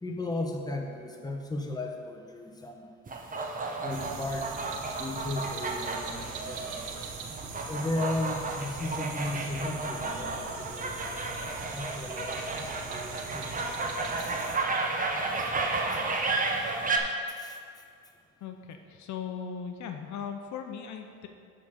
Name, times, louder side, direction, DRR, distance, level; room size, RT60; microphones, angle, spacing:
voice 1, 0.0-2.9 3.8-4.5 5.0-6.9 7.7-14.6 17.4-17.6, left 2 dB, 15° left, 1 dB, 1.0 m, -36 dB
sound 1, 3.1-17.0, right 3 dB, 25° right, 0.9 m, -33 dB
sound 2, 3.9-14.6, right 5 dB, 80° right, 0.9 m, -42 dB
voice 2, 18.4-21.3, left 7 dB, 70° left, 5 dB, 0.6 m, -38 dB
8.2 x 3.9 x 6.5 m, 2.2 s
cardioid pair, 90°, 30 cm